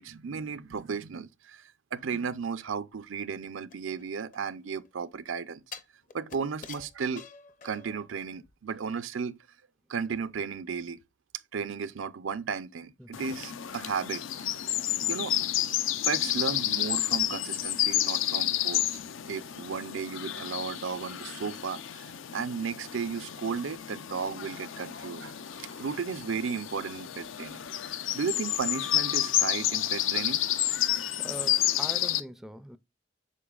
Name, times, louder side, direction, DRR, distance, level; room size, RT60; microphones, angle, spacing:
voice 1, 0.0-5.6 6.1-7.2 7.6-9.4 9.9-11.0 11.5-14.6 15.1-15.4 16.1-19.0 19.3-27.7 28.1-30.4, right 5 dB, 85° right, 0.5 m, -34 dB
sound 1, 3.7-4.9 5.7-8.1 8.4-8.5, left 6 dB, 40° left, 0.6 m, -47 dB
sound 2, 13.1-32.2, left 12 dB, 85° left, 0.5 m, -30 dB
voice 2, 31.2-32.8, equal, ahead, 0.3 m, -42 dB
8.4 x 5.4 x 2.3 m
head